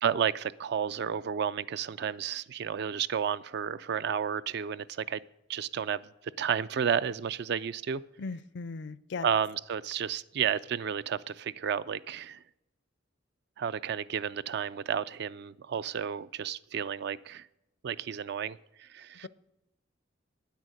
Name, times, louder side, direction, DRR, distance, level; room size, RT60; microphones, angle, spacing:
voice 1, 0.0-5.2 5.5-6.0 6.4-8.0 9.2-12.4 13.6-17.5 17.8-19.3, right 8 dB, 60° right, 0.3 m, -32 dB
voice 2, 8.2-9.3, left 4 dB, 60° left, 0.4 m, -37 dB
9.6 x 8.3 x 6.4 m
head